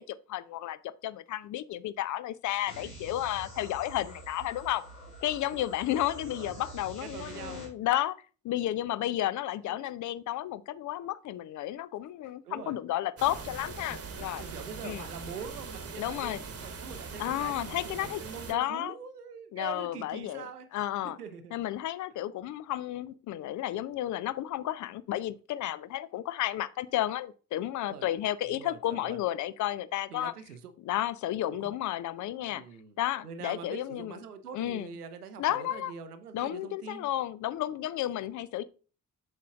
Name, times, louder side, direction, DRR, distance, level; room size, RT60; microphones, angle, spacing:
voice 1, 0.0-4.8 5.2-8.2 8.4-14.4 14.8-15.0 16.0-16.4 17.2-18.2 18.5-18.9 19.5-21.2 21.5-30.3 30.8-32.6 33.0-34.1 34.5-34.9 35.4-35.9 36.3-38.6, left 13 dB, 45° left, 0.5 m, -32 dB
sound 1, 2.7-7.7, right 1 dB, 90° left, 1.0 m, -46 dB
voice 2, 5.9-6.8 7.0-7.7 9.6-9.9 12.4-12.8 14.4-20.7 21.0-21.5 27.9-28.1 28.4-29.2 30.1-30.7 31.5-31.7 32.5-37.1, right 6 dB, 90° right, 0.6 m, -44 dB
sound 2, 13.2-18.5, right 4 dB, 30° right, 1.3 m, -42 dB
7.4 x 5.3 x 2.4 m
figure-of-eight pair, 40°, 45 cm